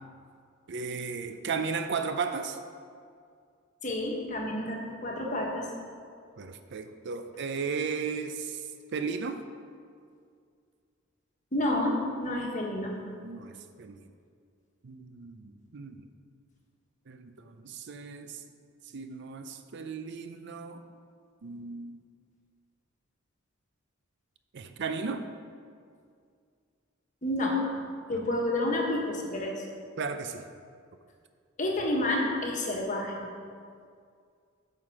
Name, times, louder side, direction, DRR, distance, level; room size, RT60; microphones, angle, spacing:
voice 1, 0.7-2.6 6.4-8.6 8.9-9.4 13.2-14.0 14.8-16.0 17.1-18.4 18.9-20.8 21.4-22.0 24.5-25.3 28.1-28.3 30.0-30.4, right 5 dB, 60° right, 8 dB, 0.5 m, -35 dB
voice 2, 3.8-5.6 11.5-13.0 27.2-27.6 28.1-29.6 31.6-33.3, left 1 dB, 40° left, 0 dB, 1.3 m, -29 dB
9.5 x 5.8 x 4.7 m, 2.2 s
head